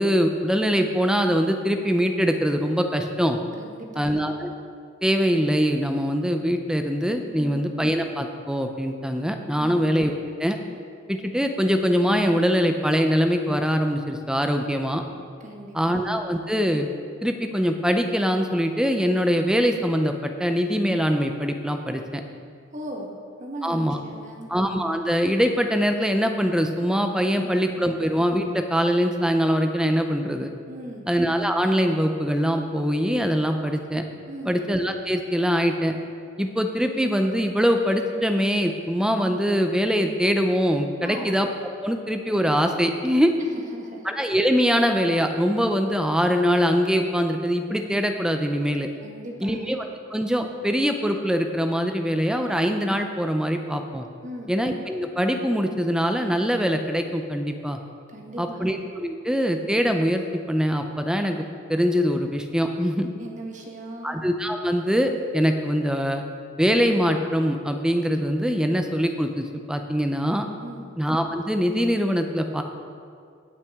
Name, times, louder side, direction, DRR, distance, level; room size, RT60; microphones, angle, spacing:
voice 1, 0.0-3.4 4.0-4.5 5.0-10.6 11.1-15.0 15.7-16.9 17.2-22.2 23.6-24.0 24.5-30.5 31.1-34.0 34.5-36.0 36.4-41.5 41.8-43.3 44.0-48.9 49.4-54.1 54.5-57.8 58.4-60.2 60.5-61.4 61.7-63.1 64.0-66.2 66.6-70.5 71.0-72.6, equal, 5° right, 5 dB, 0.4 m, -23 dB
voice 2, 3.6-4.2 7.4-7.6 9.6-9.8 15.4-16.0 22.7-24.5 30.7-31.1 34.3-34.6 41.0-41.4 43.7-44.1 49.0-49.8 54.2-54.6 58.1-58.7 63.2-64.2 70.6-70.9, right 1 dB, 40° right, 0 dB, 1.3 m, -38 dB
17.5 x 5.9 x 3.5 m, 2.3 s
head